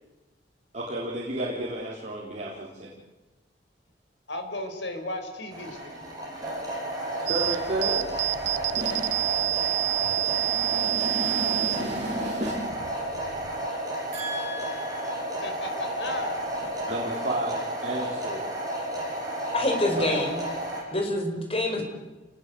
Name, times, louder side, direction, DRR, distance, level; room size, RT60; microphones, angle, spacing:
voice 1, 0.7-2.9 7.2-8.2 8.8-12.7 14.1-15.4 16.9-18.5 19.5-19.6 19.9-20.1, right 1 dB, 40° right, -4 dB, 4.7 m, -33 dB
voice 2, 4.3-6.0 15.4-16.4, left 1 dB, 75° left, 5 dB, 4.8 m, -34 dB
sound 1, 5.5-20.8, right 1 dB, 20° right, 7.8 m, -32 dB
sound 2, 7.3-13.7, right 13 dB, 75° right, 0.8 m, -29 dB
voice 3, 19.5-20.4 20.9-21.8, left 1 dB, 30° left, 3 dB, 5.4 m, -26 dB
29.0 x 20.5 x 8.1 m, 1.1 s
head